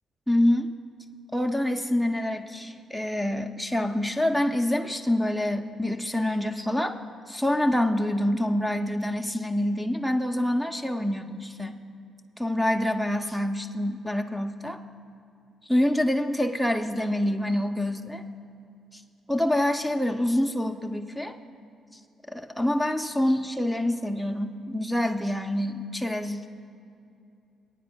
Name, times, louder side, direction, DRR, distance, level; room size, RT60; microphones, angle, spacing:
voice 1, 0.3-0.7 1.3-7.0 7.3-11.8 12.4-14.8 15.7-18.2 18.9-19.0 19.3-21.3 22.3-26.5, left 1 dB, 5° right, 6 dB, 0.5 m, -26 dB
19.0 x 9.3 x 2.2 m, 2.6 s
cardioid pair, 90°, 0 cm